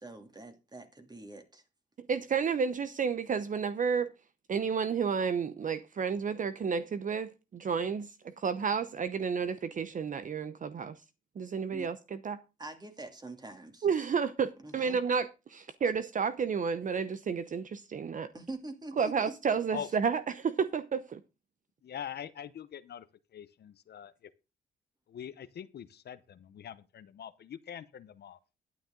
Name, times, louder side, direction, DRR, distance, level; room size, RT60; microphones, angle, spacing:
voice 1, 0.0-1.6 11.7-11.9 12.6-13.9 14.6-15.0 18.3-19.3, right 2 dB, 20° right, 2.7 m, -44 dB
voice 2, 2.1-4.1 4.5-10.9 11.4-12.4 13.8-18.3 19.0-21.2, right 6 dB, 40° right, 0.8 m, -31 dB
voice 3, 21.8-23.1 23.3-24.1 25.1-28.4, left 9 dB, 55° left, 0.9 m, -43 dB
11.5 x 9.6 x 3.8 m
cardioid pair, 90°, 20 cm